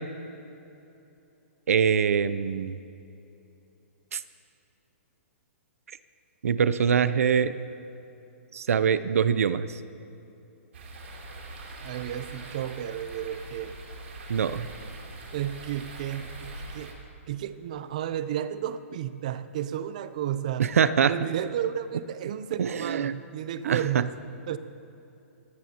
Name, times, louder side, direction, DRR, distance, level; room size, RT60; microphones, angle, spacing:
voice 1, 1.7-2.8 4.1-4.2 6.4-7.5 8.5-9.8 14.3-14.7 20.6-21.1 22.6-23.1 23.6-24.0, right 7 dB, 75° right, 14 dB, 0.6 m, -24 dB
sound 1, 10.7-16.9, right 2 dB, 55° right, 3.0 m, -42 dB
voice 2, 11.8-13.8 15.3-16.9 17.3-20.8 21.1-24.1 24.5-24.6, right 10 dB, 30° right, 13 dB, 0.5 m, -32 dB
22.5 x 16.0 x 2.9 m, 2.9 s
hypercardioid pair, 175°, 8 cm